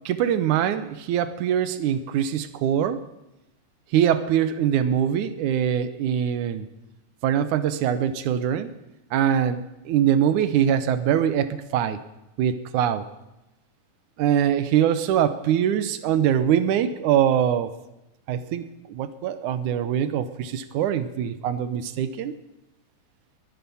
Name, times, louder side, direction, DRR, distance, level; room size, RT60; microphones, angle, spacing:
voice 1, 0.1-3.0 3.9-6.7 7.2-8.7 9.1-12.0 12.4-13.0 14.2-17.7 18.3-22.3, right 9 dB, 80° right, 12 dB, 2.3 m, -23 dB
20.5 x 9.9 x 7.1 m, 0.95 s
omnidirectional pair, 3.5 m